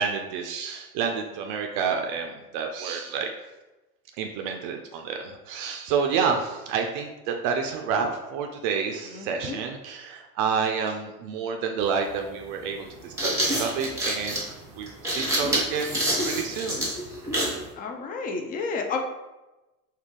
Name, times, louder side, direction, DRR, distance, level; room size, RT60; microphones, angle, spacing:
voice 1, 0.0-3.3 4.2-16.0 16.2-16.9, right 6 dB, 55° right, 3 dB, 0.4 m, -29 dB
voice 2, 9.1-9.6 17.8-19.0, left 4 dB, 20° left, 3 dB, 0.3 m, -31 dB
sound 1, 11.8-11.9 12.9-17.6, right 1 dB, 5° right, 1.1 m, -27 dB
2.7 x 2.5 x 3.6 m, 1.1 s
hypercardioid pair, 90°, 45 cm